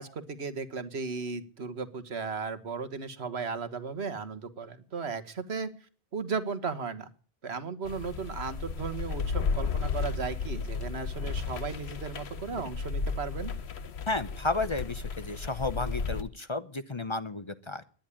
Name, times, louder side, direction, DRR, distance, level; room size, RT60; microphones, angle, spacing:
voice 1, 0.0-5.7 6.1-7.1 7.4-13.5, right 5 dB, 90° right, 11 dB, 1.7 m, -35 dB
sound 1, 7.8-16.2, left 5 dB, 90° left, 1.3 m, -34 dB
voice 2, 14.1-17.8, left 3 dB, 30° left, 12 dB, 0.8 m, -32 dB
10.5 x 10.5 x 10.0 m, 0.41 s
omnidirectional pair, 1.1 m